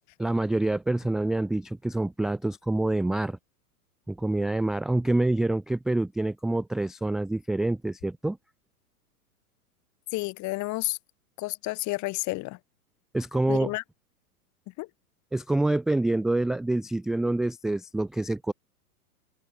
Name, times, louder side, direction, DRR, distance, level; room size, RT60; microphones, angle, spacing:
voice 1, 0.2-3.4 4.1-8.4 13.1-13.7 15.3-18.5, right 2 dB, ahead, 0.3 m, -26 dB
voice 2, 10.1-11.0 11.4-12.6 13.5-13.8 14.8-14.9, left 21 dB, 40° left, 5.9 m, -30 dB
hypercardioid pair, 110°, 45 cm